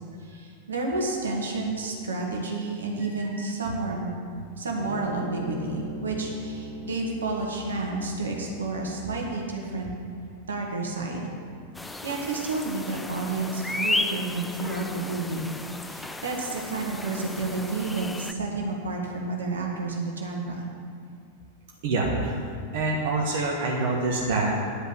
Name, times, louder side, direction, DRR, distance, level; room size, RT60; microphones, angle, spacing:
voice 1, 0.2-4.1 4.6-9.9 10.5-11.3 12.0-15.5 15.8-20.7, right 3 dB, 70° right, -1 dB, 1.7 m, -30 dB
sound 1, 4.8-11.4, equal, 60° left, 2.0 m, -40 dB
sound 2, 11.7-18.3, left 2 dB, 5° left, 0.5 m, -34 dB
voice 2, 21.8-22.4 22.7-24.8, right 2 dB, 50° right, -3 dB, 1.4 m, -26 dB
9.8 x 5.3 x 8.2 m, 2.3 s
figure-of-eight pair, 90°, 0 cm